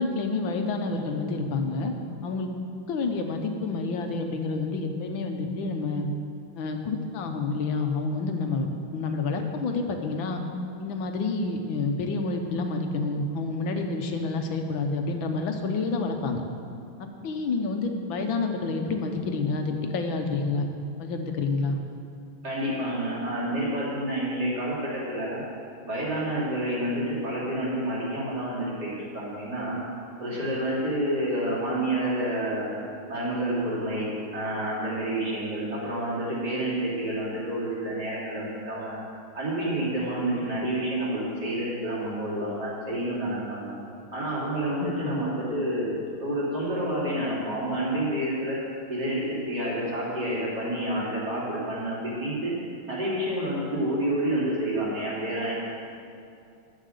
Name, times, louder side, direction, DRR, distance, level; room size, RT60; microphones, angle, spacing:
voice 1, 0.0-1.9 2.2-2.5 2.9-6.1 6.6-8.7 8.9-10.4 10.8-16.4 17.0-20.6 21.0-21.8 44.8-45.1, left 3 dB, 70° left, 4 dB, 1.7 m, -28 dB
voice 2, 22.4-25.4 25.8-29.8 30.2-32.7 33.1-39.0 39.3-43.7 44.1-45.9 46.2-48.6 48.9-52.5 52.9-55.5, right 1 dB, 50° right, -7 dB, 3.8 m, -29 dB
11.5 x 8.3 x 6.7 m, 2.5 s
omnidirectional pair, 2.3 m